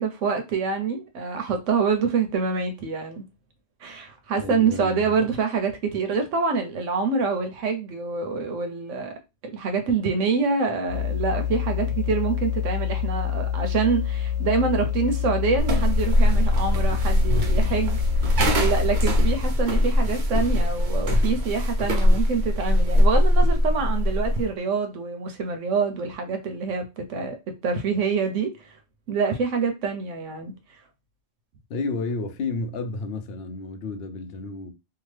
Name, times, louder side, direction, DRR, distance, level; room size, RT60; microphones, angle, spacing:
voice 1, 0.0-3.2 3.8-9.1 9.5-27.4 27.6-28.8 29.1-30.5, right 5 dB, 85° right, 1.0 m, -26 dB
voice 2, 4.4-5.3 31.7-34.7, left 3 dB, 65° left, 0.7 m, -31 dB
sound 1, 10.9-19.6, left 10 dB, 85° left, 1.3 m, -27 dB
sound 2, 15.6-24.5, left 1 dB, 50° right, 0.7 m, -21 dB
2.8 x 2.2 x 3.1 m
omnidirectional pair, 1.2 m